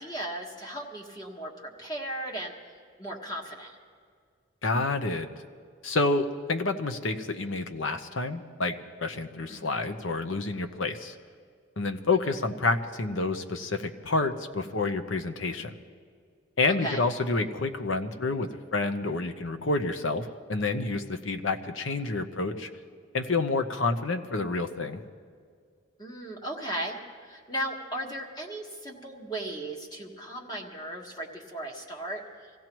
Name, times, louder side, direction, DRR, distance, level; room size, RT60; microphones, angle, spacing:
voice 1, 0.0-2.5 3.0-3.7 9.5-9.9 16.7-17.0 26.0-27.0 27.2-32.2, right 1 dB, 20° left, 0 dB, 1.5 m, -36 dB
voice 2, 4.6-5.3 5.8-11.1 11.8-15.8 16.6-22.7 23.1-25.0, left 3 dB, 80° left, 7 dB, 0.9 m, -29 dB
25.5 x 16.5 x 3.1 m, 2.1 s
head